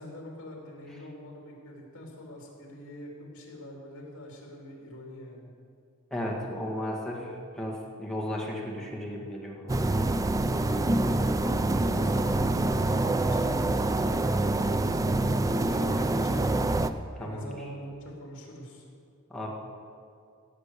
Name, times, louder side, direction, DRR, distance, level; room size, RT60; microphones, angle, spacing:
voice 1, 0.0-5.5 11.3-15.0 15.3-16.5 16.7-18.9, equal, 60° left, -1 dB, 3.4 m, -44 dB
voice 2, 6.1-9.7 17.2-17.7 19.3-19.5, left 1 dB, 5° left, -2 dB, 1.9 m, -35 dB
sound 1, 9.7-16.9, right 2 dB, 15° right, 0.4 m, -26 dB
17.0 x 7.1 x 8.5 m, 2.3 s
head